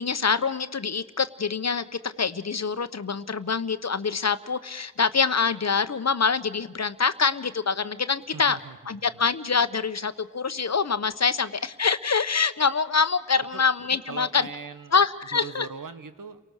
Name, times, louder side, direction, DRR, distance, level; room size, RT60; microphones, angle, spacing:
voice 1, 0.0-8.6 8.9-14.4 14.9-15.7, left 5 dB, 55° left, 12 dB, 1.0 m, -25 dB
voice 2, 8.3-9.2 13.5-13.6 14.1-15.0 15.3-16.4, right 5 dB, 80° right, 10 dB, 1.4 m, -40 dB
30.0 x 18.5 x 6.6 m, 1.2 s
cardioid pair, 50°, 32 cm